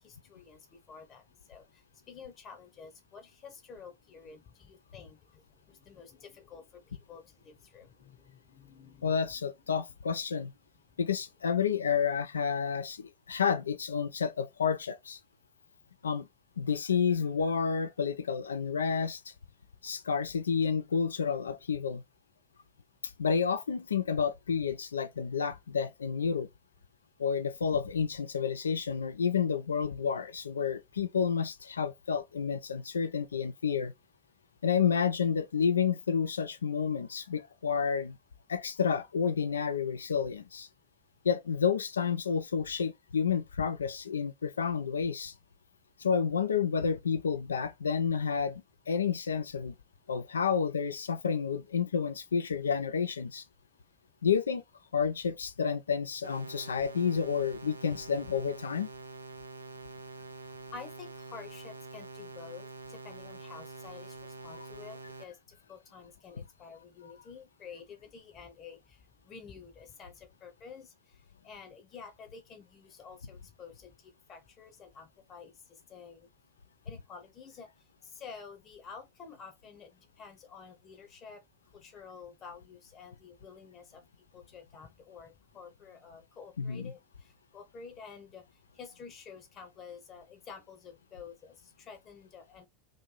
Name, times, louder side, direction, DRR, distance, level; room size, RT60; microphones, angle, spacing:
voice 1, 0.0-9.3 10.9-11.0 59.7-76.3 76.8-92.7, left 5 dB, 35° left, 0.9 m, -50 dB
voice 2, 9.0-10.5 11.0-15.2 16.0-16.3 16.6-19.3 19.8-22.0 23.0-26.5 27.2-33.9 34.6-38.2 38.5-40.7 41.2-45.3 46.0-49.7 50.1-53.4 54.2-54.6 54.9-58.9 86.6-86.9, left 6 dB, 75° left, 0.3 m, -30 dB
sound 1, 56.2-65.2, right 3 dB, 85° right, 0.5 m, -46 dB
3.1 x 2.6 x 3.7 m
figure-of-eight pair, 80°, 0 cm